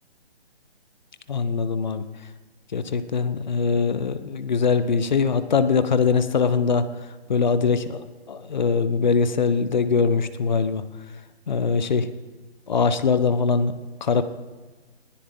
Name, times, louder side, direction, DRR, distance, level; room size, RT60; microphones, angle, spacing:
voice 1, 1.3-2.0 2.7-6.9 7.3-10.8 11.5-12.1 12.7-13.7 14.0-14.2, left 5 dB, 45° left, 12 dB, 1.1 m, -22 dB
20.5 x 14.5 x 3.8 m, 1.3 s
hypercardioid pair, 165°, 32 cm